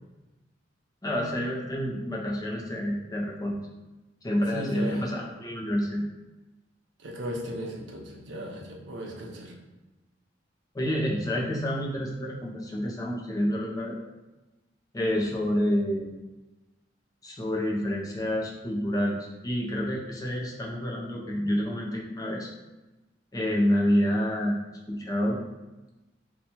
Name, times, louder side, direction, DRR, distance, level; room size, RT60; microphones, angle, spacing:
voice 1, 1.0-3.6 4.2-6.0 10.7-14.0 14.9-16.1 17.2-19.2 19.4-22.5 23.3-24.5 24.9-25.4, equal, 20° left, -2 dB, 0.5 m, -28 dB
voice 2, 4.5-5.1 7.0-9.6, equal, 75° right, 1 dB, 0.6 m, -36 dB
2.8 x 2.3 x 4.2 m, 1.1 s
head